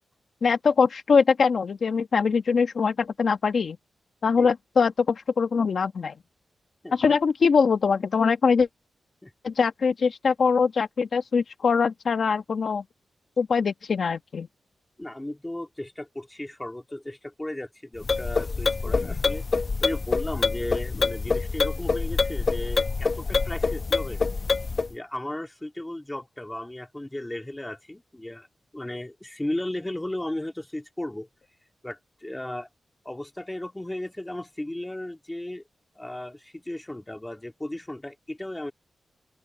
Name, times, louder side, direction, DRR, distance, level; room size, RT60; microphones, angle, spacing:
voice 1, 0.4-3.8 4.2-6.1 6.9-8.7 9.4-12.8 13.4-14.5, left 5 dB, 60° left, 1.2 m, -22 dB
voice 2, 6.8-7.2 9.2-9.3 15.0-19.4 19.8-24.2 24.9-28.5 28.7-31.3 31.8-32.7 33.0-35.6 35.9-38.7, left 1 dB, 10° left, 3.1 m, -35 dB
sound 1, 18.0-24.9, left 4 dB, 45° left, 0.9 m, -26 dB
open air
wide cardioid pair, 95°, 0 cm